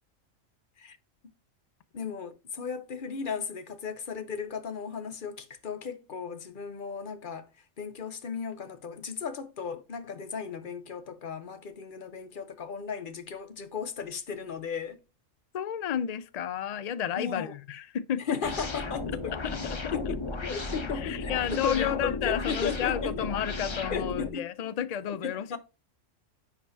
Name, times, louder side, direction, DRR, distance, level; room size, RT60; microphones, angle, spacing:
voice 1, 1.9-7.5 7.8-15.0 17.1-17.5 18.2-19.4 19.9-23.3 23.9-24.5 25.1-25.6, left 6 dB, 45° left, 0.9 m, -36 dB
voice 2, 15.5-18.2 19.4-19.6 19.8-20.0 20.9-25.6, left 9 dB, 80° left, 0.3 m, -31 dB
sound 1, 18.4-24.3, left 3 dB, 25° left, 0.7 m, -35 dB
9.9 x 5.1 x 2.7 m
omnidirectional pair, 1.3 m